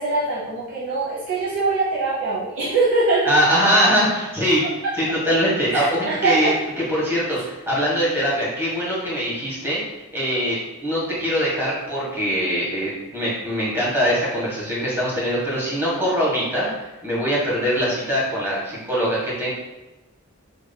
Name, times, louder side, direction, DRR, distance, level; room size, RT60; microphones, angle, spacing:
voice 1, 0.0-3.4 4.8-4.9 5.7-6.6, right 3 dB, 85° right, -8 dB, 0.9 m, -22 dB
voice 2, 3.2-4.6 4.9-9.8 10.1-19.5, equal, 10° right, -7 dB, 1.2 m, -22 dB
5.2 x 2.9 x 2.2 m, 1.1 s
head